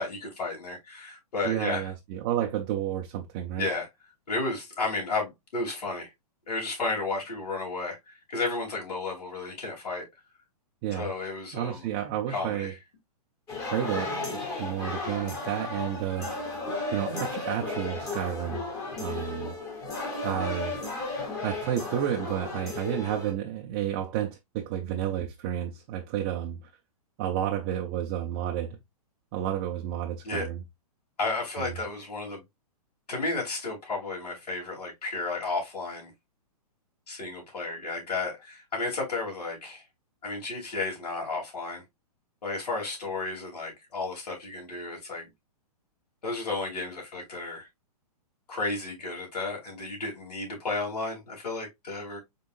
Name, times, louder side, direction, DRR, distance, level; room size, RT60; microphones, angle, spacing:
voice 1, 0.0-1.9 3.6-3.9 4.3-6.1 6.5-10.0 10.9-11.9 12.3-12.8 30.2-30.5 31.2-32.4 33.1-36.1 37.1-39.8 40.2-41.8 42.4-45.3 46.2-47.7 48.5-52.2, left 3 dB, 90° left, 2.9 m, -33 dB
voice 2, 1.4-3.7 10.8-11.1 11.5-12.7 13.7-16.3 16.9-18.6 19.0-19.6 20.2-20.8 21.4-26.7 27.2-28.8 29.3-30.6 31.6-31.8, right 10 dB, 20° right, 0.4 m, -31 dB
sound 1, 13.5-23.3, left 3 dB, 15° left, 1.0 m, -34 dB
5.3 x 3.6 x 2.4 m
hypercardioid pair, 165°, 20 cm